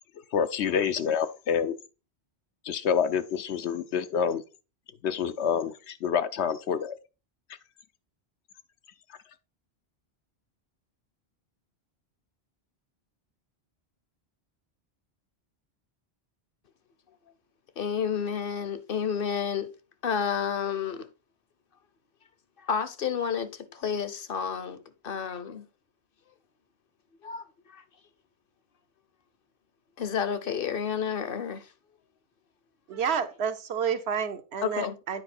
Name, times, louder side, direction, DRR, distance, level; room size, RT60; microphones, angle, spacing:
voice 1, 0.3-1.8 2.6-4.4 5.0-6.9, left 7 dB, 85° left, 1.0 m, -27 dB
voice 2, 17.8-19.7 20.0-21.1 22.6-25.7 27.2-27.4 27.7-27.8 30.0-31.7 34.6-34.9, left 7 dB, 60° left, 0.9 m, -30 dB
voice 3, 32.9-35.2, right 7 dB, 75° right, 1.1 m, -30 dB
8.9 x 4.8 x 4.3 m
omnidirectional pair, 1.1 m